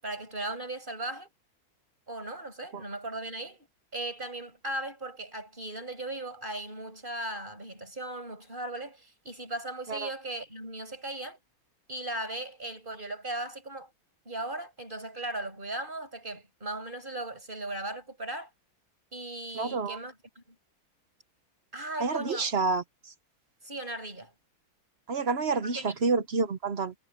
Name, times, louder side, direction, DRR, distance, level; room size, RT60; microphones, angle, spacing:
voice 1, 0.0-1.3 2.1-3.7 3.9-11.4 11.9-13.9 14.3-18.5 19.1-20.4 21.7-22.5 23.6-24.3 25.7-25.9, right 1 dB, 25° right, 7.1 m, -37 dB
voice 2, 19.5-20.0 22.0-22.8 25.1-26.9, right 4 dB, 50° right, 0.7 m, -28 dB
omnidirectional pair, 2.3 m